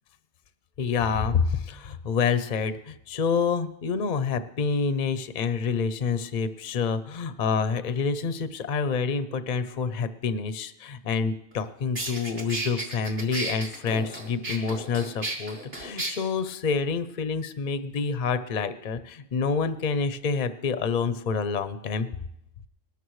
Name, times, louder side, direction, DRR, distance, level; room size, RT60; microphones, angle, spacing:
voice 1, 0.8-22.1, left 5 dB, 45° left, 11 dB, 0.6 m, -27 dB
sound 1, 11.5-11.6 12.0-16.1, right 2 dB, 45° right, 2.3 m, -33 dB
20.5 x 13.0 x 3.1 m, 0.81 s
omnidirectional pair, 1.3 m